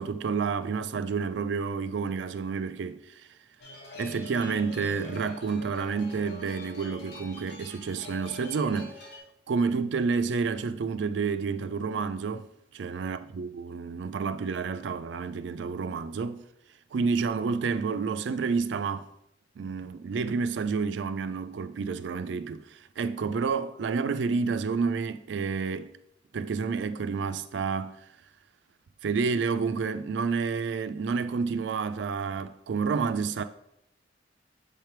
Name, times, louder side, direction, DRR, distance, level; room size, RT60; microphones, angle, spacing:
voice 1, 0.0-3.1 4.0-8.9 9.5-16.4 16.9-19.1 19.6-25.9 26.3-28.0 29.0-33.4, right 5 dB, 75° right, 0.4 m, -29 dB
sound 1, 3.6-9.2, left 2 dB, 65° left, 1.3 m, -44 dB
6.5 x 3.3 x 4.4 m
head